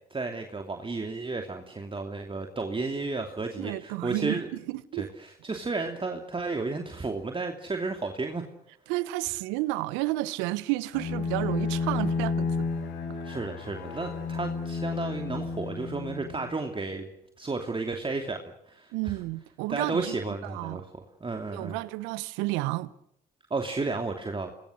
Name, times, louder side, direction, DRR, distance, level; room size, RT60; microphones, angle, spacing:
voice 1, 0.1-4.5 4.9-8.4 13.2-17.1 17.4-18.4 18.7-19.1 19.7-21.8 23.5-24.5, right 3 dB, 25° right, 2.8 m, -33 dB
voice 2, 3.6-4.4 4.7-5.1 8.9-12.7 18.9-20.2 20.4-20.8 21.5-22.9, right 19 dB, 80° right, 1.0 m, -31 dB
Bowed string instrument, 10.9-16.8, left 4 dB, 75° left, 5.4 m, -32 dB
27.5 x 21.0 x 6.5 m
hypercardioid pair, 50°, 19 cm